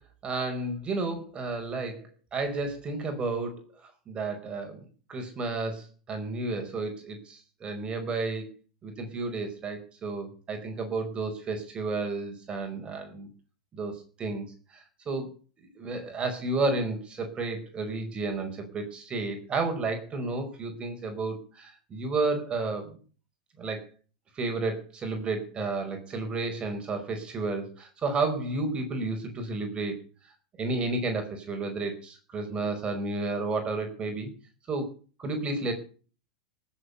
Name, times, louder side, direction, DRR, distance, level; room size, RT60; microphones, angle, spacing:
voice 1, 0.2-3.7 4.1-4.8 5.1-8.5 8.8-13.3 13.7-15.3 15.6-22.9 23.6-23.9 24.3-30.0 30.6-34.3 34.7-34.9 35.2-35.7, right 3 dB, 25° right, 4 dB, 4.8 m, -32 dB
19.0 x 7.8 x 6.9 m, 0.40 s
hypercardioid pair, 105°, 4 cm